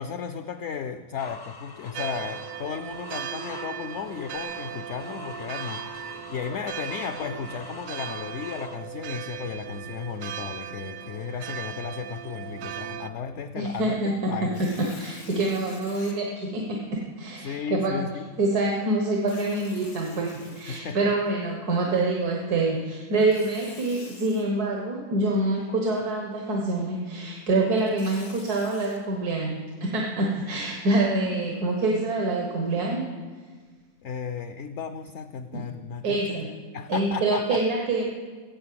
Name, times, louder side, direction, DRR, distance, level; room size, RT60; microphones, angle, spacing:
voice 1, 0.0-14.6 17.4-18.2 20.7-21.1 34.0-36.4 36.7-37.6, left 7 dB, 60° left, 10 dB, 0.8 m, -34 dB
sound 1, 1.2-8.8, left 3 dB, 25° left, 0.5 m, -43 dB
sound 2, 1.9-13.1, right 10 dB, 70° right, 0.9 m, -38 dB
voice 2, 13.6-18.0 18.4-33.1 35.5-35.6 36.0-36.5 36.9-38.1, right 2 dB, 90° right, 0 dB, 1.8 m, -26 dB
Tearing, 14.4-16.1 16.8-16.9 19.1-21.3 23.1-24.4 27.6-29.0, left 4 dB, 85° left, 2.3 m, -47 dB
15.5 x 8.2 x 7.6 m, 1.5 s
omnidirectional pair, 1.6 m